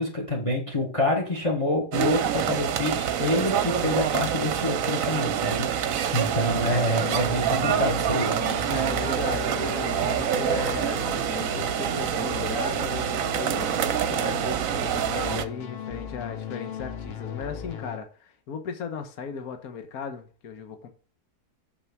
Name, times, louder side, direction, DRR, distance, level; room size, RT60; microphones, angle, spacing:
voice 1, 0.0-8.4, left 1 dB, 20° left, 1.8 m, -27 dB
sound 1, 1.9-15.4, right 9 dB, 60° right, 1.1 m, -26 dB
sound 2, 6.5-18.0, left 6 dB, 45° left, 1.0 m, -37 dB
voice 2, 8.7-13.7 14.1-20.9, left 6 dB, 60° left, 1.7 m, -36 dB
7.0 x 6.4 x 6.1 m
omnidirectional pair, 1.8 m